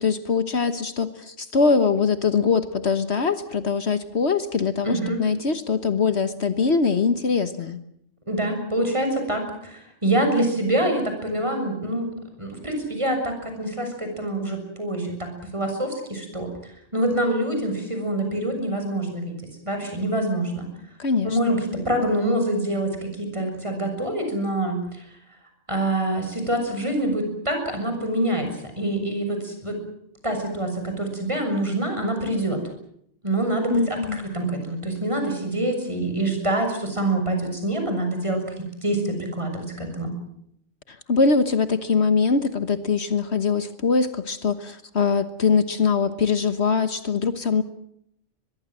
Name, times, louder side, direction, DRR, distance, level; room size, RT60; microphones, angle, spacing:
voice 1, 0.0-7.8 21.0-21.4 33.7-34.2 40.9-47.6, left 5 dB, 60° left, 11 dB, 1.5 m, -22 dB
voice 2, 4.8-5.2 8.3-12.1 12.4-19.4 19.6-20.7 21.2-25.0 25.7-28.5 28.8-29.8 30.2-32.6 33.2-40.1, right 1 dB, 25° right, 5 dB, 6.7 m, -26 dB
24.0 x 21.5 x 7.5 m, 0.72 s
omnidirectional pair, 1.2 m